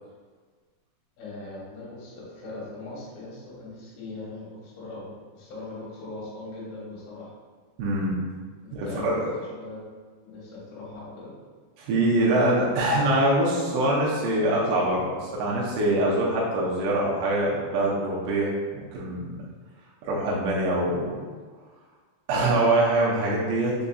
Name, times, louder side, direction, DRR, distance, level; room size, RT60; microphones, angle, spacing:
voice 1, 1.2-7.3 8.6-9.8 10.2-11.3, left 2 dB, 70° left, -7 dB, 3.0 m, -40 dB
voice 2, 7.8-8.2 8.7-9.3 11.8-19.4 20.0-21.3 22.3-23.8, right 1 dB, 85° right, -5 dB, 3.1 m, -24 dB
7.0 x 2.6 x 2.3 m, 1.5 s
omnidirectional pair, 5.4 m